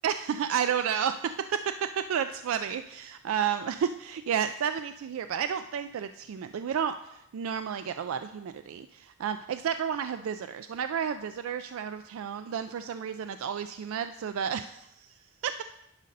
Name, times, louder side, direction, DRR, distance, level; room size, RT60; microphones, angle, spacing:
voice 1, 0.0-15.1 15.4-15.6, right 8 dB, 80° right, 10 dB, 0.3 m, -31 dB
10.5 x 4.0 x 5.3 m, 0.78 s
head